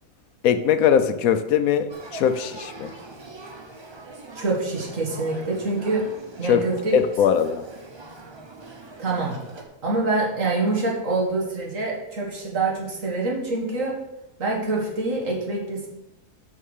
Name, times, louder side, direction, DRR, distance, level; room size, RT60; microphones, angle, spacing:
voice 1, 0.4-2.9 6.4-6.6 6.9-7.6, left 8 dB, 75° left, 11 dB, 1.1 m, -21 dB
Male speech man speaking / Child speech kid speaking / Conversation, 1.9-9.6, right 2 dB, 30° right, 0.5 m, -42 dB
voice 2, 4.3-6.0 6.4-7.0 9.0-9.3 9.8-13.9 14.4-15.9, right 3 dB, 60° right, -2 dB, 2.2 m, -25 dB
6.3 x 5.5 x 6.4 m, 0.91 s
omnidirectional pair, 1.5 m